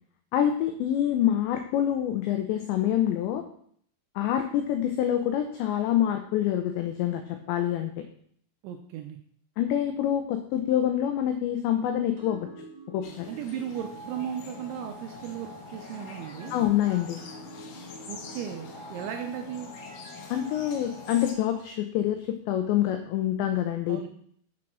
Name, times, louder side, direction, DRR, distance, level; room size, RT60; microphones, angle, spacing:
voice 1, 0.3-3.4 4.2-7.9 9.6-12.5 12.9-13.3 16.5-17.2 20.3-24.0, left 11 dB, 90° left, 6 dB, 2.5 m, -26 dB
voice 2, 8.6-9.2 13.3-16.6 18.1-19.7 23.9-24.1, right 9 dB, 85° right, 5 dB, 2.7 m, -36 dB
sound 1, 12.2-21.5, right 2 dB, 45° right, 1.2 m, -47 dB
sound 2, 13.0-21.3, left 6 dB, 70° left, 2.6 m, -45 dB
7.5 x 6.1 x 6.1 m, 0.63 s
omnidirectional pair, 6.0 m